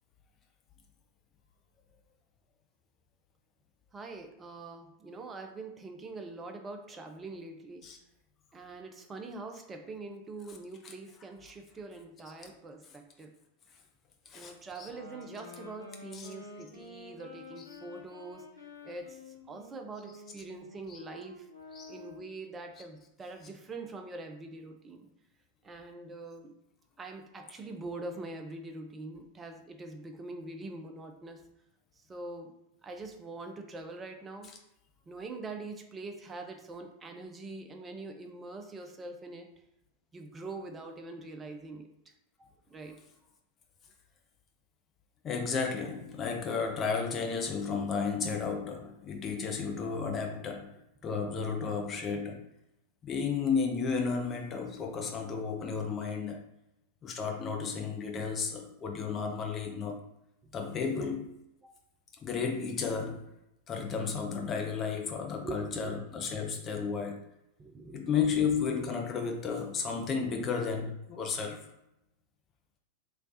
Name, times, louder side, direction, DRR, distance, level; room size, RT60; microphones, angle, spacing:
voice 1, 3.9-7.8 8.5-13.3 14.3-18.5 18.8-21.5 21.9-25.1 25.6-26.5 27.0-31.4 32.1-32.5 32.8-34.5 35.1-39.5 40.1-41.9 42.7-42.9 61.0-61.2 65.4-66.0 67.6-68.2, right 2 dB, 20° right, 0.5 m, -44 dB
voice 2, 14.3-14.9 16.1-16.3 20.9-21.0 21.7-21.9 45.2-52.4 53.0-56.4 57.0-60.1 60.5-61.3 62.2-63.3 63.7-67.2 67.9-71.7, left 5 dB, 25° left, 0.6 m, -33 dB
sound 1, 14.8-22.4, left 2 dB, 80° left, 0.8 m, -50 dB
3.2 x 3.2 x 2.6 m
figure-of-eight pair, 90°, 0 cm